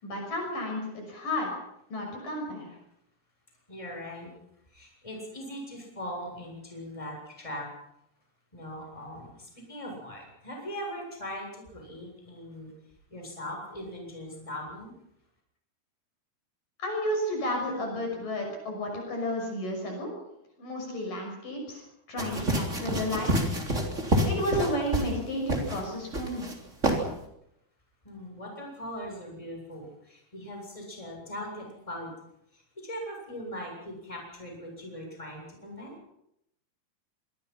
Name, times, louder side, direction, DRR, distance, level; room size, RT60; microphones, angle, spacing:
voice 1, 0.0-1.5 1.9-2.7 16.8-20.1 20.6-21.8 22.1-23.3 24.2-26.5, left 1 dB, 55° left, 1 dB, 7.8 m, -32 dB
voice 2, 3.7-4.3 4.7-7.7 8.5-12.7 13.1-14.9 28.0-32.1 32.5-35.9, equal, 10° left, 0 dB, 7.5 m, -40 dB
sound 1, 22.2-25.2 25.5-25.8 26.1-26.5 26.8-27.0, right 1 dB, 20° right, 3.6 m, -27 dB
26.0 x 23.0 x 5.8 m, 0.79 s
omnidirectional pair, 4.5 m